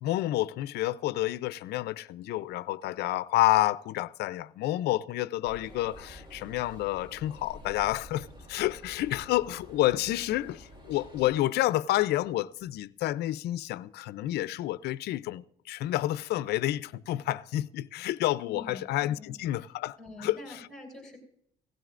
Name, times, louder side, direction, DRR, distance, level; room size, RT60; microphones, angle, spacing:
voice 1, 0.0-20.4, left 15 dB, 75° left, 0.5 m, -29 dB
sound 1, 5.4-11.4, equal, 25° right, 4.2 m, -49 dB
voice 2, 18.4-19.7 20.0-21.2, left 1 dB, 5° left, 6.2 m, -46 dB
17.5 x 16.0 x 2.5 m
cardioid pair, 110°, 17 cm